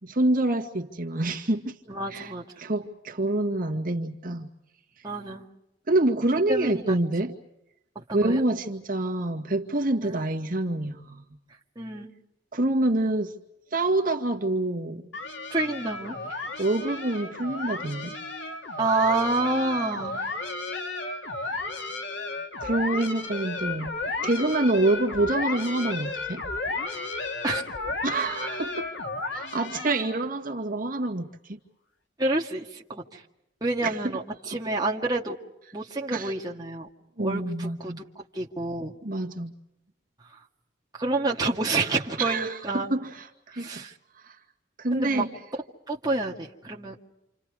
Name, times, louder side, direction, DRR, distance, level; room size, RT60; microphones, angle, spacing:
voice 1, 0.0-1.8 2.1-2.3 2.6-4.5 5.9-7.3 8.1-11.2 12.5-13.3 13.7-15.0 16.6-18.1 22.6-24.0 24.2-26.4 28.0-28.9 29.3-31.6 33.8-34.0 34.5-34.6 36.1-36.3 37.2-38.0 39.0-39.5 42.2-43.8 44.1-44.4 44.8-45.3, right 2 dB, 50° right, 2 dB, 2.1 m, -26 dB
voice 2, 1.9-2.5 5.0-5.5 6.5-7.0 8.0-8.4 10.0-10.2 11.8-12.1 15.5-16.2 18.8-20.3 27.4-27.7 32.2-33.2 33.6-35.4 35.7-36.9 37.2-37.9 38.3-38.9 40.3-40.4 40.9-42.9 43.5-43.9 44.9-45.3 45.9-47.0, right 2 dB, 20° right, -2 dB, 2.0 m, -28 dB
sound 1, 15.1-30.3, left 3 dB, 75° left, 2.8 m, -33 dB
29.0 x 28.0 x 4.9 m, 0.86 s
head